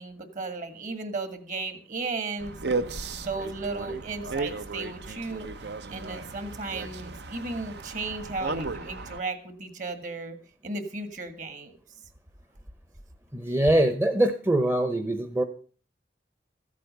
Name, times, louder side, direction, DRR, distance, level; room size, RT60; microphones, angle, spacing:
voice 1, 0.0-2.6 3.1-5.5 5.9-10.4 10.6-11.8, right 3 dB, 45° right, 9 dB, 1.8 m, -35 dB
sound 1, 2.4-9.2, right 3 dB, 70° right, 1.0 m, -35 dB
voice 2, 13.3-15.4, right 1 dB, 15° right, 8 dB, 0.8 m, -23 dB
15.0 x 8.4 x 6.6 m, 0.42 s
head